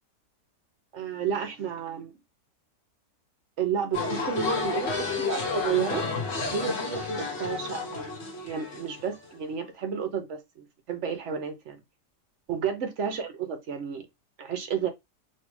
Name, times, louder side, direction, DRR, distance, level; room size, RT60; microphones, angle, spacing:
voice 1, 0.9-2.1 3.6-6.1 6.5-11.8 12.5-14.1 14.4-14.9, right 7 dB, 55° right, 0.9 m, -31 dB
sound 1, 3.9-9.4, left 4 dB, 45° left, 1.1 m, -31 dB
3.2 x 2.7 x 3.0 m
omnidirectional pair, 1.8 m